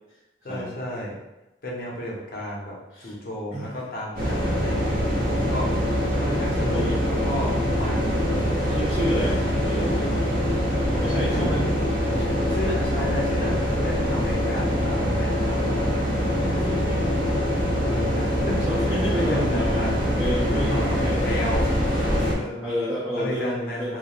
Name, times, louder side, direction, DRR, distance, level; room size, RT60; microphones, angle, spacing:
voice 1, 0.4-1.1 1.6-2.7 3.0-5.7 6.2-8.4 11.3-11.7 12.5-15.9 17.9-20.1 20.5-22.0 22.4-22.7 23.1-24.0, equal, 55° left, -4 dB, 0.6 m, -33 dB
sound 1, 4.1-22.3, equal, 55° right, 1.0 m, -24 dB
voice 2, 6.7-7.1 7.4-8.1 8.7-10.2 10.9-11.8 12.2-12.3 16.1-17.2 18.6-19.8 20.2-21.3 21.9-22.2 22.6-24.0, equal, 10° right, -9 dB, 0.4 m, -30 dB
2.3 x 2.1 x 2.9 m, 1.0 s
head